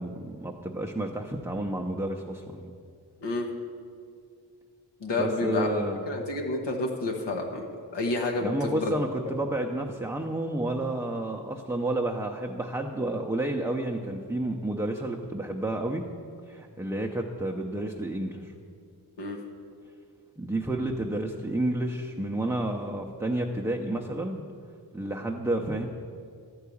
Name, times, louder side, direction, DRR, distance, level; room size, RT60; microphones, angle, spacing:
voice 1, 0.0-2.7 5.2-6.0 8.4-16.1 16.5-18.5 20.4-24.4 24.9-25.9, right 1 dB, 5° right, 1 dB, 0.5 m, -30 dB
voice 2, 5.0-7.7 7.9-9.0 19.2-19.4, left 2 dB, 90° left, 1 dB, 1.1 m, -29 dB
12.0 x 4.7 x 8.4 m, 2.3 s
wide cardioid pair, 100°, 41 cm